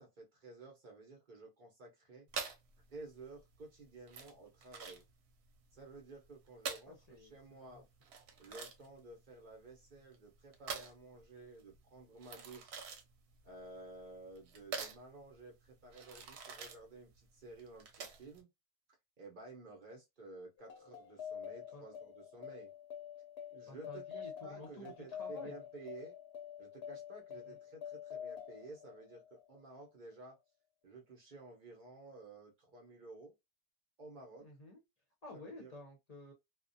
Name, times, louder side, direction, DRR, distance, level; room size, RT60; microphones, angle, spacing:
voice 1, 0.0-2.3 2.9-5.0 5.7-7.9 8.4-12.8 13.4-18.5 19.2-22.7 23.5-26.2 26.6-30.4 30.8-33.3 34.0-34.5 35.3-35.7, right 3 dB, 50° right, 0.8 m, -53 dB
sound 1, 2.3-18.4, right 5 dB, 85° right, 0.9 m, -47 dB
voice 2, 6.9-7.8 21.7-21.8 23.7-25.5 27.5-27.6 34.4-34.8 35.2-36.3, left 1 dB, 45° left, 0.7 m, -52 dB
sound 2, 20.6-29.6, left 8 dB, 85° left, 0.8 m, -47 dB
2.4 x 2.1 x 2.5 m
omnidirectional pair, 1.1 m